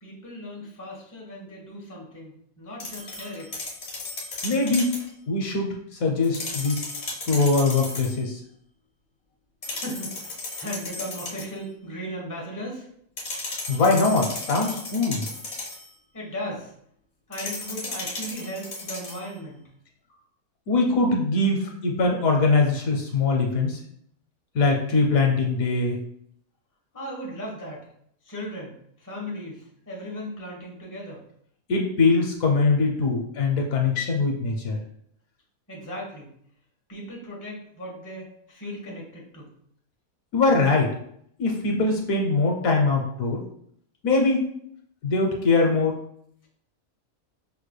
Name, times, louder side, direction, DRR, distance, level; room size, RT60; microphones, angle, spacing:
voice 1, 0.0-3.6 9.6-12.9 16.1-16.7 17.3-19.7 26.9-27.9 28.2-31.2 35.7-36.3 36.9-39.5, equal, 15° left, -3 dB, 0.9 m, -37 dB
sound 1, 2.8-5.1 6.2-8.2 9.6-11.6 13.2-15.9 17.3-19.3, left 2 dB, 50° left, 1.2 m, -35 dB
voice 2, 4.4-5.0 5.3-6.9 7.3-8.4 13.7-15.2 20.7-23.8 24.5-26.0 31.7-34.8 40.3-40.9 41.4-43.4 44.0-44.4 45.0-46.0, left 3 dB, 75° left, 1 dB, 1.1 m, -22 dB
5.4 x 3.2 x 2.2 m, 0.68 s
omnidirectional pair, 1.5 m